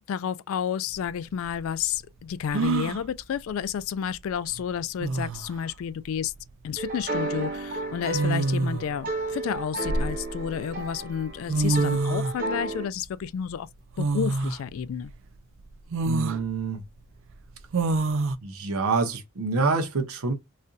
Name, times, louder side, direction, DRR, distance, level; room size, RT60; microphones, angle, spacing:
voice 1, 0.1-6.3 6.6-13.7 14.0-15.1, left 8 dB, 70° left, 0.3 m, -31 dB
sound 1, 0.9-1.0 2.5-3.0 4.5-4.6 5.0-5.5 6.8-7.0 8.1-8.9 9.5-10.6 11.2-11.3 11.5-12.4 14.0-14.6 15.1-15.2 15.9-16.4 17.7-18.4, right 3 dB, 65° right, 0.4 m, -26 dB
sound 2, 6.8-12.9, right 2 dB, 45° right, 1.0 m, -33 dB
voice 2, 16.1-16.8 18.4-20.3, right 4 dB, 85° right, 0.8 m, -26 dB
4.1 x 2.5 x 2.4 m
head